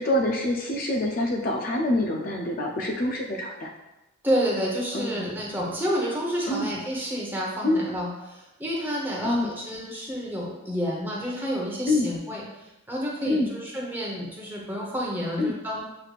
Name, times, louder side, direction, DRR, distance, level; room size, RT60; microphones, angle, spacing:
voice 1, 0.0-3.7 4.9-5.3 6.5-6.7 7.6-7.8 9.2-9.5 11.9-12.1 13.3-13.5 15.4-15.5, left 1 dB, 40° left, 0 dB, 0.4 m, -26 dB
voice 2, 4.2-15.8, equal, 10° right, -4 dB, 0.8 m, -29 dB
6.7 x 3.2 x 2.4 m, 0.99 s
head